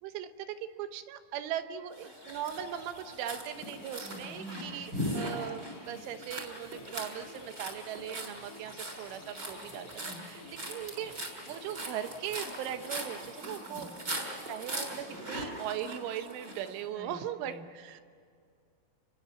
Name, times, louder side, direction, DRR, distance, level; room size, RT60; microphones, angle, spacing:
voice 1, 0.0-9.9 10.2-10.4 10.7-11.1 11.5-13.9 14.5-18.0, right 10 dB, 80° right, 9 dB, 3.6 m, -39 dB
sound 1, 2.0-16.7, right 1 dB, 20° right, 6.3 m, -40 dB
sound 2, 3.5-13.3, left 4 dB, 85° left, 5.4 m, -54 dB
voice 2, 4.0-4.8 10.0-10.2 13.6-13.9 16.9-17.7, equal, 35° left, 5 dB, 1.2 m, -47 dB
29.5 x 22.5 x 7.1 m, 2.3 s
omnidirectional pair, 5.5 m